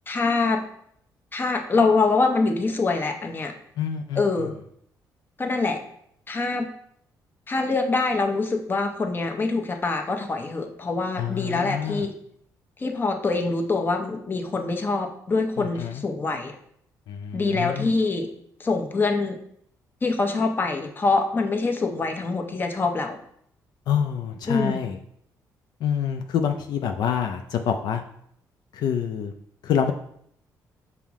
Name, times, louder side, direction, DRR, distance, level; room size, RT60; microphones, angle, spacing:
voice 1, 0.1-0.6 1.3-3.5 4.2-4.6 5.4-5.8 6.3-6.7 7.5-12.1 12.8-16.5 17.3-18.3 18.6-19.4 20.0-23.2 24.5-24.8, left 3 dB, 30° left, 5 dB, 0.6 m, -24 dB
voice 2, 3.8-4.2 11.2-12.1 15.6-16.0 17.1-17.9 23.9-25.0 25.8-28.0 28.7-29.3 29.6-29.9, left 8 dB, 75° left, 5 dB, 0.3 m, -26 dB
5.6 x 2.0 x 4.6 m, 0.69 s
cardioid pair, 90°, 7 cm